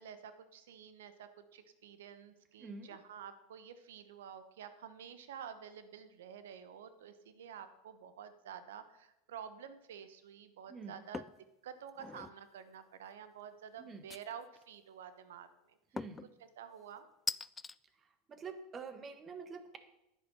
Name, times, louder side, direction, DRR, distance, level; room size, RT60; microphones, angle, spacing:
voice 1, 0.0-11.2 11.6-15.8 16.4-17.1, right 8 dB, 70° right, 11 dB, 1.1 m, -50 dB
voice 2, 2.6-3.0 10.7-11.0 13.8-14.0 15.9-16.3 18.3-19.8, right 5 dB, 30° right, 9 dB, 1.6 m, -47 dB
sound 1, 11.1-11.4 11.9-12.4 14.1-14.6 16.0-16.3 17.3-17.7, left 4 dB, 15° left, 0.3 m, -41 dB
10.5 x 9.5 x 5.7 m, 0.89 s
hypercardioid pair, 85°, 0 cm